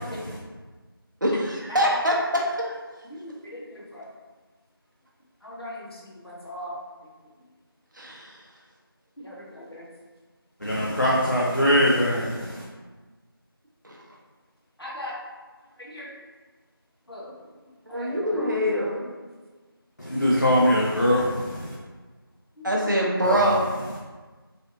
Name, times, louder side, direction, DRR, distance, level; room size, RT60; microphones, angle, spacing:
voice 1, 1.2-2.7 8.0-8.4 13.8-14.0 17.9-19.0 22.6-23.6, equal, 50° right, -3 dB, 0.7 m, -24 dB
voice 2, 3.1-4.1 5.4-6.8 9.2-9.9 14.8-15.1 15.8-16.1 17.1-17.3 17.9-19.1 20.2-20.3 22.6-22.8, left 1 dB, 80° left, -5 dB, 1.0 m, -39 dB
voice 3, 10.6-12.6 20.0-21.7 23.2-23.5, equal, 50° left, -6 dB, 0.5 m, -22 dB
3.2 x 2.5 x 2.6 m, 1.3 s
figure-of-eight pair, 180°, 13 cm